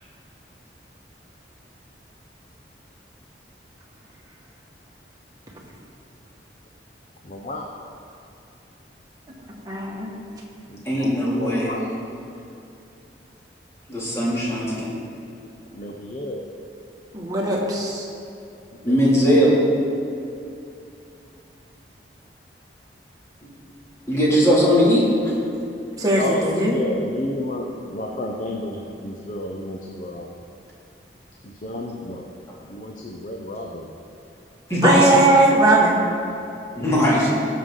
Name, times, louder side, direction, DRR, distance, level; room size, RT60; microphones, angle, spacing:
voice 1, 7.2-7.6 10.7-11.1 11.4-11.9 15.7-16.4 18.9-19.1 26.2-30.3 31.4-32.2 32.7-33.9 36.8-37.1, left 1 dB, 45° left, 0 dB, 0.7 m, -31 dB
voice 2, 9.5-10.1 17.1-18.1 26.0-26.8 34.8-36.0, right 2 dB, 20° right, -3 dB, 1.7 m, -19 dB
voice 3, 10.8-11.7 13.9-14.9 18.8-19.5 23.4-23.5 24.1-25.3 34.7-35.1 36.8-37.3, equal, 15° left, -7 dB, 2.6 m, -19 dB
16.5 x 6.6 x 3.8 m, 2.6 s
head